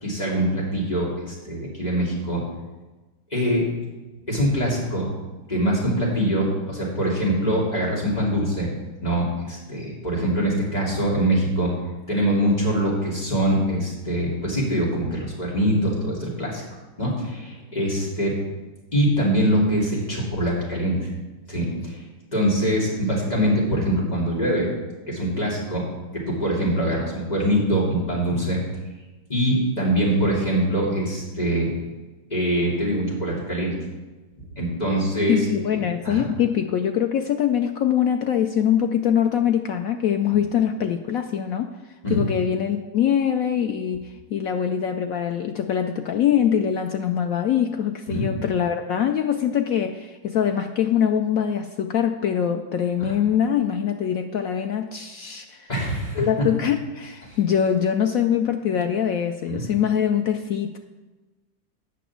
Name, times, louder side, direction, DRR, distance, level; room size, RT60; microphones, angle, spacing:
voice 1, 0.0-2.4 3.3-3.7 4.3-5.1 5.5-11.7 12.1-16.6 17.0-18.4 18.9-21.1 21.5-22.0 22.3-24.7 25.1-25.8 26.1-28.6 29.3-31.7 32.3-33.7 34.6-35.5 36.0-36.3 42.0-42.2 48.1-48.2 53.0-53.1 55.7-56.3 57.2-57.4 59.5-59.6, right 1 dB, 20° left, -4 dB, 2.9 m, -23 dB
voice 2, 35.3-41.7 42.1-55.7 56.2-60.8, left 9 dB, 85° left, 5 dB, 0.7 m, -23 dB
9.2 x 6.1 x 7.2 m, 1.2 s
omnidirectional pair, 2.1 m